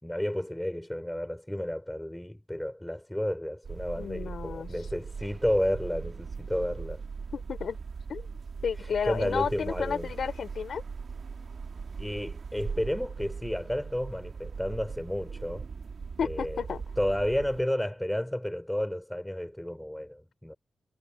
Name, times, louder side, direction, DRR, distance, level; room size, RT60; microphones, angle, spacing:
voice 1, 0.0-7.0 8.8-10.1 12.0-15.7 16.2-16.6 17.0-20.5, equal, 5° left, 3.4 m, -31 dB
sound 1, 3.6-17.6, right 5 dB, 55° right, 1.5 m, -40 dB
voice 2, 4.0-4.7 7.3-7.8 8.1-8.2 8.6-10.8 16.2-16.8, left 6 dB, 70° left, 4.3 m, -32 dB
wide cardioid pair, 135°, 0 cm